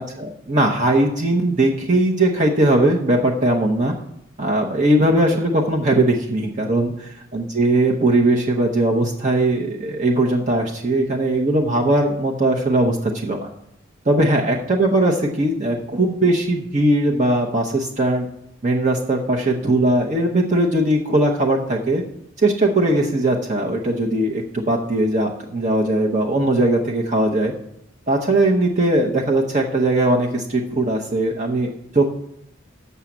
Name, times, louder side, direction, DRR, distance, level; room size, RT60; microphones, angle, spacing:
voice 1, 0.0-3.9 4.4-6.9 7.3-13.5 14.1-18.3 18.6-22.0 22.4-27.5 28.1-32.1, right 1 dB, 35° right, -1 dB, 0.8 m, -19 dB
6.9 x 6.4 x 7.2 m, 0.78 s
head